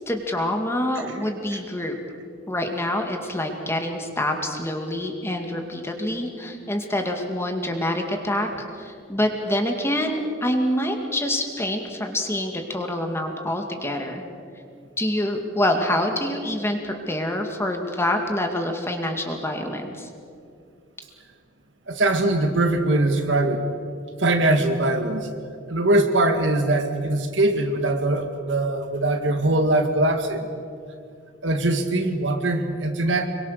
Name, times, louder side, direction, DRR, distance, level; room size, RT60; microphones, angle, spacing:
voice 1, 0.1-2.0 2.5-8.5 8.8-14.2 15.0-20.1, left 1 dB, 15° left, 4 dB, 2.2 m, -26 dB
voice 2, 21.9-23.6 24.2-25.3 25.7-30.5 31.4-33.3, right 2 dB, 65° right, 6 dB, 2.0 m, -22 dB
26.0 x 23.0 x 6.8 m, 2.4 s
head